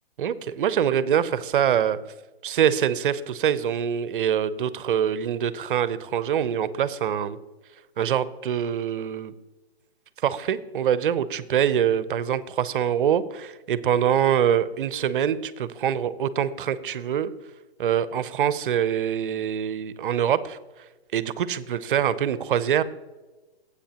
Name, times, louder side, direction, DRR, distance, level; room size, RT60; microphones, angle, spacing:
voice 1, 0.2-2.0 2.4-7.4 8.0-9.3 10.2-17.3 17.8-20.6 21.1-22.8, right 9 dB, 55° right, 15 dB, 0.7 m, -24 dB
16.0 x 8.2 x 2.9 m, 1.2 s
hypercardioid pair, 150°, 32 cm